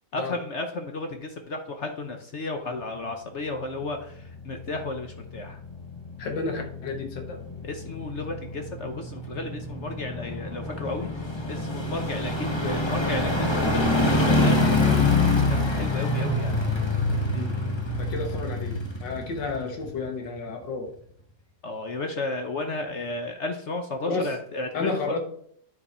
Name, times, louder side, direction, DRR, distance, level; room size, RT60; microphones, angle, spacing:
voice 1, 0.1-5.6 7.6-11.1 11.5-15.3 15.7-16.6 21.6-25.2, left 2 dB, 55° left, 4 dB, 0.9 m, -33 dB
sound 1, 3.7-20.3 20.6-20.7, left 2 dB, 20° left, 0.8 m, -26 dB
voice 2, 6.2-7.4 17.3-17.5 18.0-20.9 24.0-24.3 24.7-25.2, left 3 dB, 75° left, 3 dB, 2.0 m, -31 dB
9.8 x 4.7 x 4.3 m, 0.64 s
omnidirectional pair, 2.0 m